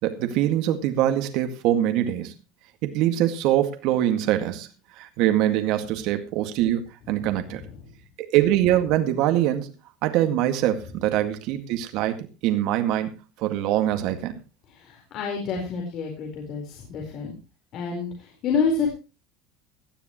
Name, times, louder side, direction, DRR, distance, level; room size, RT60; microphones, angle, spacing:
voice 1, 0.0-2.3 2.8-4.7 5.0-7.6 8.2-9.7 10.0-13.1 13.4-14.3, right 12 dB, 55° right, 6 dB, 2.0 m, -23 dB
voice 2, 14.7-17.4 17.7-18.9, left 5 dB, 40° left, 0 dB, 4.4 m, -28 dB
18.0 x 12.5 x 3.1 m, 0.30 s
cardioid pair, 160°, 0 cm